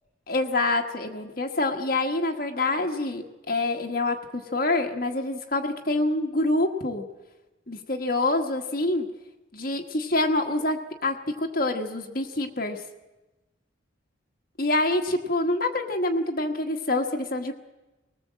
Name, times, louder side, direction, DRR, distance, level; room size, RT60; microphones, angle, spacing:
voice 1, 0.3-7.0 7.7-9.1 9.5-12.8 14.6-17.5, left 2 dB, 45° left, 3 dB, 1.4 m, -26 dB
20.5 x 19.5 x 7.5 m, 1.1 s
head